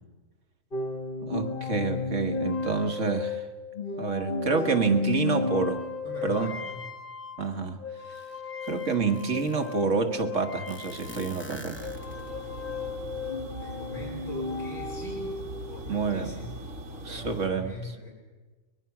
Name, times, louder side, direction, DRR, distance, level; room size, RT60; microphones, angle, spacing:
sound 1, 0.7-11.6 11.8-15.7, left 3 dB, 45° left, 1.8 m, -34 dB
voice 1, 1.2-3.4 4.0-5.7 6.2-6.5 7.4-7.8 8.7-11.8 15.9-16.3 17.1-17.7, right 4 dB, 70° right, 6 dB, 1.8 m, -28 dB
voice 2, 5.2-5.6 6.0-7.0 13.6-18.1, left 1 dB, 70° left, -5 dB, 4.6 m, -42 dB
sound 2, 8.1-8.2 8.6-9.8 10.7-12.5, left 1 dB, 10° left, 1.0 m, -45 dB
sound 3, 11.7-17.5, right 1 dB, 85° right, 2.6 m, -40 dB
24.0 x 21.0 x 6.0 m, 1.2 s
omnidirectional pair, 1.3 m